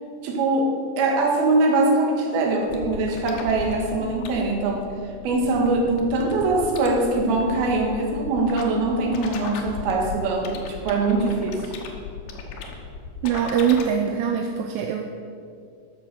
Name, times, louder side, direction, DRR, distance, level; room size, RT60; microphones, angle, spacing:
voice 1, 0.2-4.9 5.2-11.7, right 2 dB, 65° right, 0 dB, 3.1 m, -22 dB
sound 1, 2.6-13.8, left 5 dB, 70° left, 2.7 m, -36 dB
voice 2, 13.2-15.1, right 8 dB, 80° right, 4 dB, 2.7 m, -22 dB
13.0 x 7.0 x 6.6 m, 2.4 s
omnidirectional pair, 5.2 m